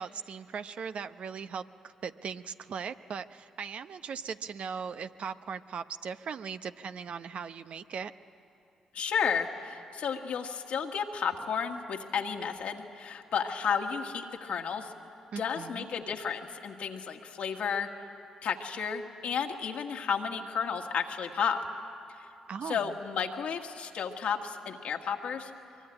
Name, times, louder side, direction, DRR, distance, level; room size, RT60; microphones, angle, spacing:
voice 1, 0.0-8.1 15.3-15.9 22.5-23.0, right 6 dB, 60° right, 10 dB, 0.8 m, -39 dB
voice 2, 8.9-14.9 15.4-17.9 18.4-21.6 22.7-25.5, left 6 dB, 70° left, 3 dB, 1.7 m, -32 dB
23.5 x 23.0 x 9.9 m, 2.8 s
hypercardioid pair, 50°, 2 cm